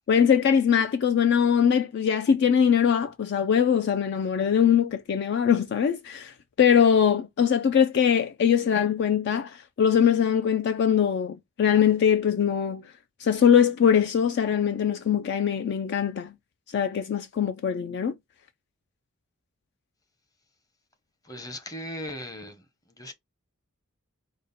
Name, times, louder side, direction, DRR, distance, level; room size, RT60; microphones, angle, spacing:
voice 1, 0.1-12.8 13.2-16.3 16.7-18.1, left 8 dB, 50° left, 0.3 m, -22 dB
voice 2, 21.2-22.6 23.0-23.1, left 1 dB, 15° left, 0.7 m, -37 dB
5.1 x 2.1 x 4.0 m
head